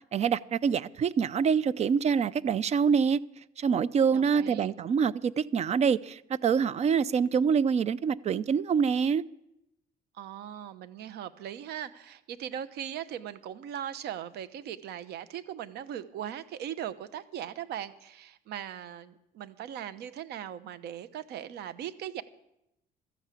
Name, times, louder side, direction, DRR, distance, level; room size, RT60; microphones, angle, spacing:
voice 1, 0.1-3.2 3.6-9.2, right 6 dB, 40° right, 0.5 m, -25 dB
voice 2, 4.1-4.7 10.2-22.2, right 10 dB, 75° right, 1.0 m, -39 dB
13.5 x 9.4 x 8.3 m
cardioid pair, 110°, 17 cm